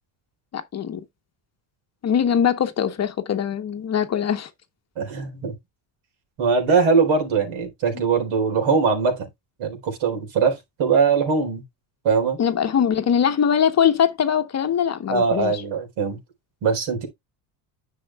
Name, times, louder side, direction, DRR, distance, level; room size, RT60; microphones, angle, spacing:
voice 1, 0.5-1.0 2.0-4.5 12.4-15.6, left 8 dB, 35° left, 0.9 m, -22 dB
voice 2, 5.0-5.5 6.4-9.3 9.6-11.6 12.0-12.4 15.1-16.2 16.6-17.1, right 5 dB, 70° right, 4.2 m, -21 dB
10.5 x 6.5 x 2.3 m
cardioid pair, 130°, 48 cm